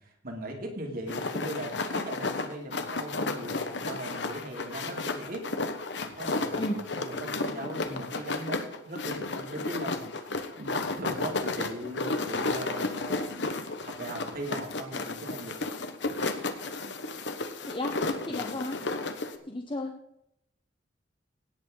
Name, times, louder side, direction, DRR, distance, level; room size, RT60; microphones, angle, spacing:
voice 1, 0.0-5.4 6.0-8.6 8.8-15.6 18.3-18.5, right 1 dB, 50° right, 2 dB, 2.8 m, -39 dB
sound 1, 1.1-19.4, left 3 dB, 70° left, 1.2 m, -33 dB
voice 2, 17.7-18.0 18.2-18.8 19.5-20.0, left 1 dB, 25° left, 3 dB, 1.0 m, -33 dB
17.5 x 8.4 x 3.9 m, 0.77 s
head